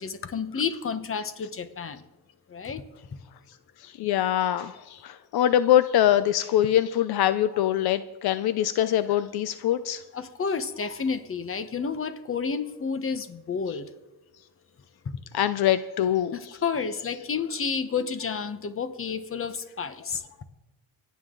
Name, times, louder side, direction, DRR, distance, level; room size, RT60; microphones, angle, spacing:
voice 1, 0.0-2.0 2.5-2.8 10.1-13.9 15.0-15.2 16.3-20.4, left 5 dB, 35° left, 11 dB, 1.1 m, -30 dB
voice 2, 3.8-10.0 15.3-16.3, left 11 dB, 75° left, 13 dB, 0.6 m, -23 dB
25.0 x 9.4 x 3.8 m, 1.1 s
cardioid pair, 110°, 38 cm